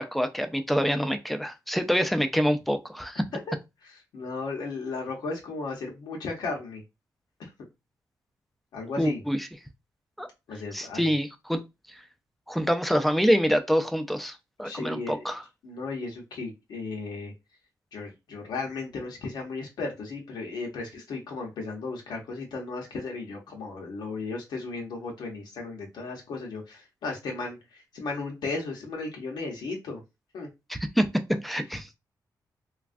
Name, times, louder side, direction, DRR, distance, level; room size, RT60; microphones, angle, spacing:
voice 1, 0.0-3.2 9.0-9.4 10.2-10.3 10.7-11.6 12.5-15.4 30.7-32.0, equal, ahead, 0.3 m, -26 dB
voice 2, 3.8-6.8 8.7-9.2 10.5-11.0 14.6-15.2 15.6-17.3 17.9-30.0 30.3-30.5, left 3 dB, 90° left, 0.8 m, -35 dB
3.1 x 2.3 x 2.5 m
cardioid pair, 110°, 7 cm